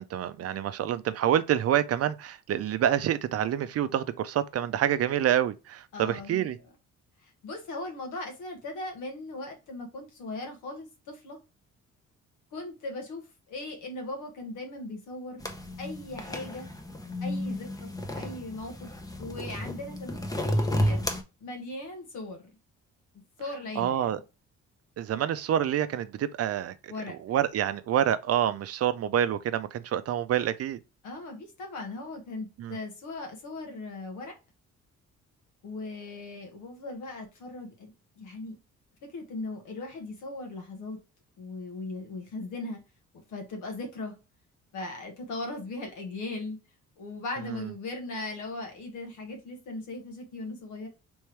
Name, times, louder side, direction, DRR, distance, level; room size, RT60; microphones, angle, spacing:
voice 1, 0.0-6.6 23.8-24.2 25.0-30.8 32.6-32.8 47.4-47.7, right 10 dB, 55° right, 0.5 m, -27 dB
voice 2, 5.9-6.5 7.2-11.4 12.5-15.4 15.8-16.7 17.2-18.9 19.2-21.0 21.4-22.5 23.4-24.1 26.9-27.1 31.0-34.3 35.6-38.6 39.1-41.0 41.4-42.8 43.3-44.1 44.7-46.6 47.0-50.9, left 2 dB, 85° left, 1.4 m, -38 dB
sound 1, 15.4-21.2, left 1 dB, 10° left, 0.7 m, -32 dB
3.5 x 3.1 x 3.1 m
cardioid pair, 90°, 30 cm